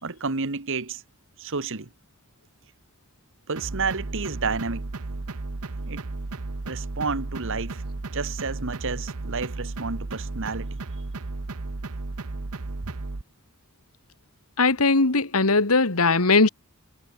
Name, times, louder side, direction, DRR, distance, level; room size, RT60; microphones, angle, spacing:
voice 1, 0.0-1.0 1.4-1.9 3.5-4.9 5.9-6.0 6.7-7.8 8.1-10.8, right 4 dB, 65° right, 1.7 m, -30 dB
sound 1, 3.6-13.2, right 3 dB, 85° right, 1.0 m, -34 dB
voice 2, 14.6-16.5, left 3 dB, 80° left, 2.0 m, -19 dB
head